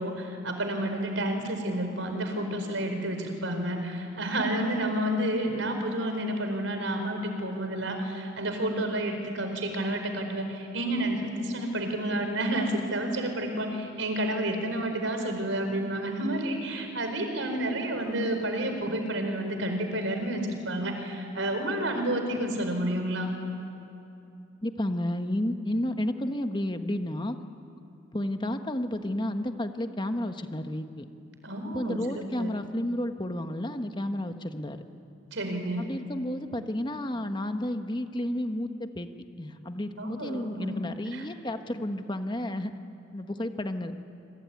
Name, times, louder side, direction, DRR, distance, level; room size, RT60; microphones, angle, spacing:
voice 1, 0.0-23.3 31.4-32.0 32.4-32.5 35.3-35.8 40.0-40.7 41.1-41.2, right 1 dB, 85° right, 5 dB, 4.5 m, -30 dB
voice 2, 24.6-27.4 28.1-31.1 31.6-34.8 35.8-39.1 39.4-42.7 43.1-43.9, left 1 dB, 25° left, 7 dB, 1.2 m, -31 dB
27.0 x 23.0 x 9.5 m, 2.7 s
head